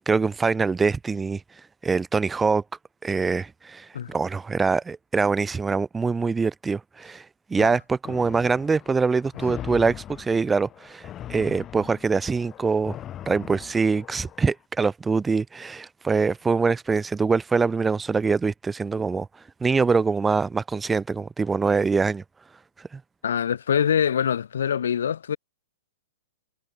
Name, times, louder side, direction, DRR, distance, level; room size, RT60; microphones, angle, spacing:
voice 1, 0.1-1.4 1.8-2.6 3.0-7.2 7.5-12.9 13.3-19.3 19.6-22.2, right 4 dB, 10° right, 0.7 m, -24 dB
sound 1, 8.0-14.5, left 11 dB, 20° left, 2.8 m, -40 dB
voice 2, 23.2-25.4, left 8 dB, 85° left, 0.7 m, -24 dB
hypercardioid pair, 150°, 0 cm